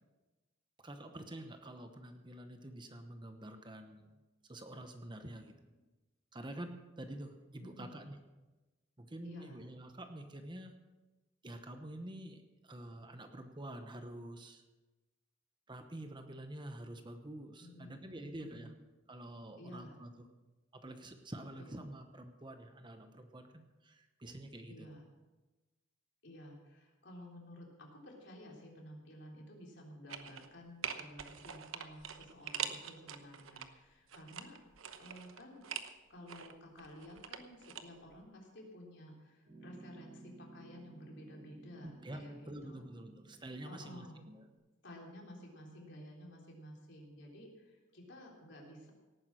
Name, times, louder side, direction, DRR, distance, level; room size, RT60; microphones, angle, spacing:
voice 1, 0.8-4.1 4.4-5.6 6.3-8.2 9.0-10.7 11.4-14.6 15.7-18.7 19.1-20.3 20.7-24.9 41.8-44.4, right 1 dB, 25° right, 7 dB, 1.0 m, -48 dB
voice 2, 7.6-7.9 9.2-9.6 17.6-18.7 19.6-19.9 21.6-21.9 24.7-25.0 26.2-34.6 35.0-35.6 36.1-42.8 43.6-44.2 44.8-48.9, equal, 60° left, -1 dB, 3.6 m, -53 dB
sound 1, 30.1-30.5 30.8-33.7 34.1-35.9 36.3-37.8 38.1-38.2, right 8 dB, 85° right, 1.0 m, -43 dB
Piano, 39.4-44.5, right 3 dB, 55° right, 6.0 m, -57 dB
17.5 x 9.5 x 6.2 m, 1.2 s
head